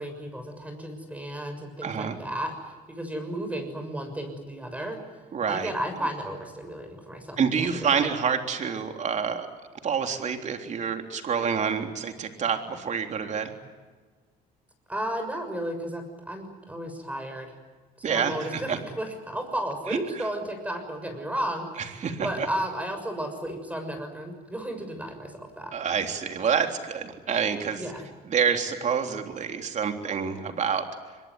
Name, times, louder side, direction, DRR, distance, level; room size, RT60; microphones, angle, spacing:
voice 1, 0.0-5.0 5.5-8.1 14.9-17.5 18.0-25.7 27.8-28.0, right 1 dB, 10° right, 6 dB, 6.6 m, -33 dB
voice 2, 1.8-2.2 5.3-5.7 7.4-9.5 9.8-13.5 18.0-18.8 19.9-20.0 21.8-22.5 25.7-27.9 28.3-30.9, right 6 dB, 45° right, 5 dB, 3.6 m, -27 dB
24.5 x 22.0 x 9.7 m, 1.4 s
cardioid pair, 110°, 17 cm